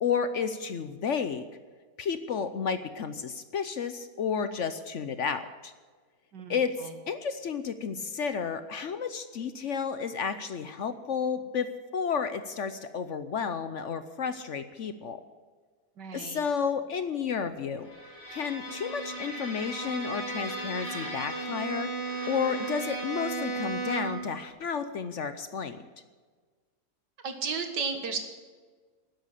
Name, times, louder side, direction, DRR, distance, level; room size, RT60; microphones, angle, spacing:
voice 1, 0.0-1.4 2.0-5.7 6.5-15.2 16.1-17.9 18.3-21.9 22.3-25.8, left 6 dB, 55° left, 10 dB, 0.9 m, -32 dB
voice 2, 16.0-16.4 27.2-28.2, right 5 dB, 90° right, 6 dB, 2.2 m, -33 dB
Bowed string instrument, 17.8-24.3, right 3 dB, 75° left, 4.6 m, -35 dB
12.5 x 10.5 x 8.3 m, 1.5 s
omnidirectional pair, 1.8 m